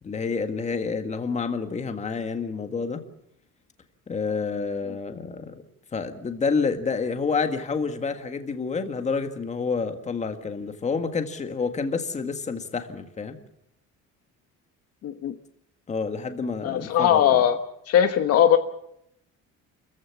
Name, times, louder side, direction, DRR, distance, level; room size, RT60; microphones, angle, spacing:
voice 1, 0.0-3.0 4.1-5.5 5.9-13.4 15.9-17.4, left 5 dB, 20° left, 7 dB, 1.8 m, -28 dB
voice 2, 15.0-15.3 16.6-17.6 17.9-18.6, left 10 dB, 50° left, 7 dB, 1.1 m, -19 dB
29.0 x 15.0 x 7.2 m, 0.78 s
cardioid pair, 165°, 32 cm